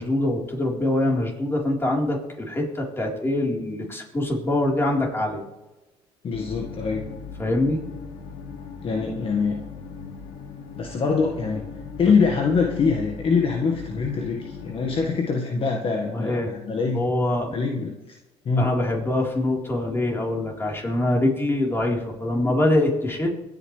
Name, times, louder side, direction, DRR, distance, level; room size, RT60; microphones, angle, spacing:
voice 1, 0.0-5.4 7.4-7.8 16.1-16.5 16.9-17.6 18.6-23.3, left 1 dB, 20° left, -1 dB, 4.0 m, -24 dB
voice 2, 6.2-7.1 8.8-9.6 10.7-11.6 12.0-17.0 17.5-18.2 18.4-18.7, left 5 dB, 50° left, 1 dB, 1.7 m, -24 dB
sound 1, 6.3-15.0, left 5 dB, 80° left, 2.0 m, -39 dB
22.5 x 9.3 x 3.3 m, 1.1 s
supercardioid pair, 90°, 12 cm